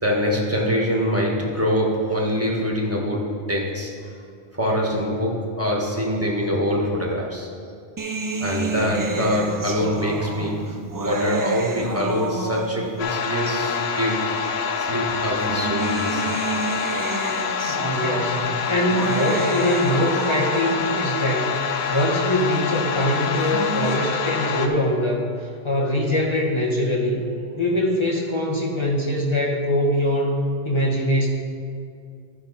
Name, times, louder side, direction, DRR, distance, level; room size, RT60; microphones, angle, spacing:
voice 1, 0.0-3.9 4.5-7.5 8.4-10.7 11.0-14.3 14.8-16.3, equal, 15° right, -2 dB, 1.3 m, -24 dB
sound 1, 8.0-13.1 14.0-14.1 15.2-21.1 23.2-24.0, right 3 dB, 35° right, 0.3 m, -30 dB
sound 2, 13.0-24.7, left 6 dB, 75° left, 1.0 m, -26 dB
voice 2, 17.7-25.3 25.6-27.2 27.5-30.4 30.6-31.3, left 1 dB, 25° left, -3 dB, 1.4 m, -23 dB
13.5 x 5.6 x 4.1 m, 2.3 s
omnidirectional pair, 1.1 m